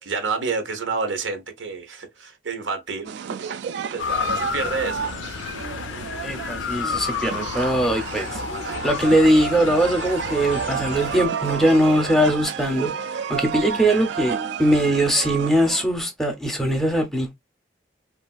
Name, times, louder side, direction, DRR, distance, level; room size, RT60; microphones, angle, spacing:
voice 1, 0.0-3.1 3.9-5.1, right 4 dB, 90° right, 0.8 m, -28 dB
sound 1, 3.0-15.9, right 7 dB, 70° right, 0.3 m, -31 dB
Motor vehicle (road) / Siren, 4.0-11.3, left 6 dB, 90° left, 0.4 m, -31 dB
voice 2, 6.2-8.4 8.8-17.4, right 1 dB, ahead, 0.6 m, -21 dB
3.2 x 2.5 x 2.3 m
head